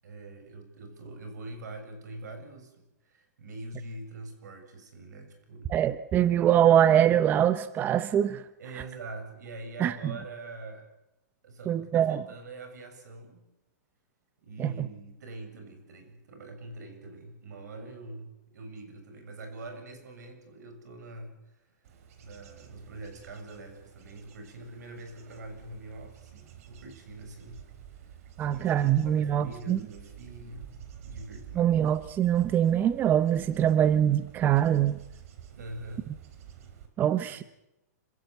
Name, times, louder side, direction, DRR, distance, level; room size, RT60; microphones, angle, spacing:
voice 1, 0.0-5.8 8.6-10.9 11.4-13.4 14.4-21.9 22.2-27.7 28.0-30.7 31.0-31.8 35.5-36.1 37.0-37.4, right 2 dB, 80° right, 7 dB, 7.2 m, -44 dB
voice 2, 5.7-8.4 9.8-9.9 11.7-12.2 14.6-14.9 28.4-29.8 31.6-35.0 37.0-37.4, right 10 dB, 20° right, 14 dB, 0.7 m, -23 dB
Bird / Insect / Wind, 21.8-36.9, right 9 dB, 55° right, 3.8 m, -49 dB
26.5 x 15.5 x 8.2 m, 0.89 s
hypercardioid pair, 150°, 9 cm